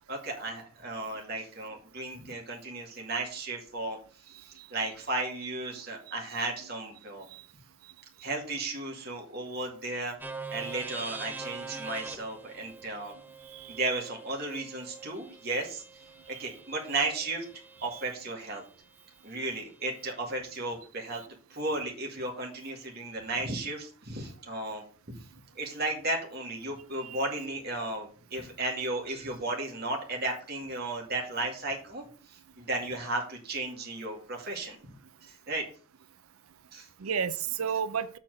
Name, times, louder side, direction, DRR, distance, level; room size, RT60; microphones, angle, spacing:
voice 1, 0.1-4.0 4.4-7.3 8.2-10.2 10.5-13.1 13.7-15.8 16.3-17.4 17.8-18.6 19.2-21.2 21.5-25.2 25.6-32.0 32.6-34.8 35.2-35.6 36.7-36.9, right 2 dB, 50° right, 2.1 m, -34 dB
sound 1, 10.2-18.1, right 3 dB, 10° right, 0.6 m, -44 dB
voice 2, 27.0-27.3 37.0-38.2, right 7 dB, 85° right, 0.5 m, -32 dB
7.2 x 4.3 x 6.3 m
head